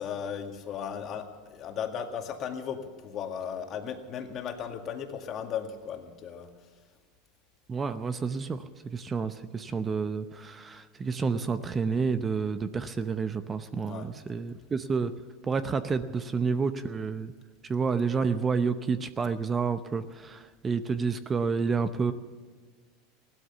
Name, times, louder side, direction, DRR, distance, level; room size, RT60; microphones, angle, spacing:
voice 1, 0.0-6.5 13.8-14.1, left 8 dB, 40° left, 5 dB, 2.0 m, -36 dB
voice 2, 7.7-15.1 15.4-17.3 17.7-22.1, right 5 dB, 25° right, 11 dB, 0.7 m, -29 dB
16.5 x 12.5 x 7.0 m, 1.5 s
supercardioid pair, 105°, 0 cm